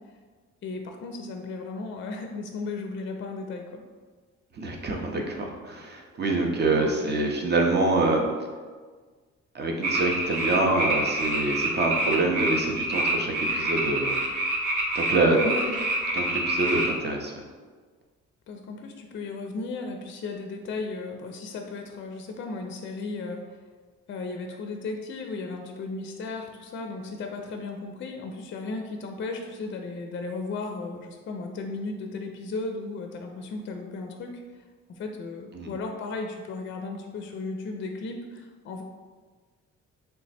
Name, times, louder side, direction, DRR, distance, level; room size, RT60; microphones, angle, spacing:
voice 1, 0.6-3.8 6.8-7.1 15.4-15.9 18.5-23.6 24.1-34.4 34.9-38.8, left 3 dB, 40° left, 4 dB, 0.4 m, -35 dB
voice 2, 4.5-8.2 9.5-14.2 14.9-15.4 16.1-17.3 35.5-35.7, right 2 dB, 35° right, 2 dB, 0.5 m, -26 dB
sound 1, 9.8-16.9, right 2 dB, 80° right, 0.7 m, -27 dB
3.3 x 2.0 x 4.1 m, 1.5 s
cardioid pair, 90°, 30 cm